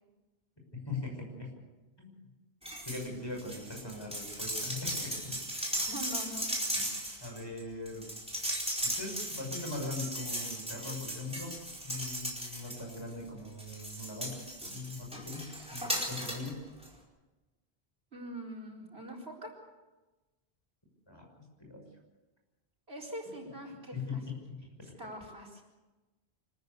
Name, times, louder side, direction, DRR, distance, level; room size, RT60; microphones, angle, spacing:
voice 1, 0.9-1.5 2.0-2.2 2.8-5.4 6.7-8.1 8.8-14.4 14.7-16.6 21.1-21.9 23.9-24.7, left 3 dB, 25° left, 0 dB, 6.1 m, -41 dB
sound 1, 2.6-3.1 3.4-13.1 13.6-16.5 16.8-16.9, equal, 5° right, 4.7 m, -37 dB
voice 2, 5.7-6.5 18.1-19.5 22.9-24.2 25.0-25.6, right 1 dB, 75° right, 2 dB, 4.6 m, -43 dB
25.5 x 14.0 x 8.2 m, 1.2 s
omnidirectional pair, 1.1 m